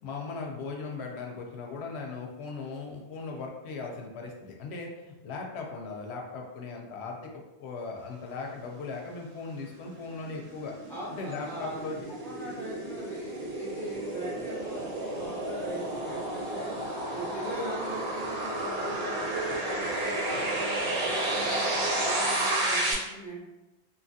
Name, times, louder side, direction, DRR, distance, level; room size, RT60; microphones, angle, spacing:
voice 1, 0.0-10.7 11.1-12.1, left 4 dB, 85° left, 1 dB, 0.8 m, -38 dB
sound 1, 9.7-22.9, right 1 dB, 75° right, 0.9 m, -32 dB
voice 2, 10.9-11.9 12.2-16.8 17.1-23.4, equal, ahead, -5 dB, 0.5 m, -40 dB
2.8 x 2.4 x 2.6 m, 1.0 s
omnidirectional pair, 1.1 m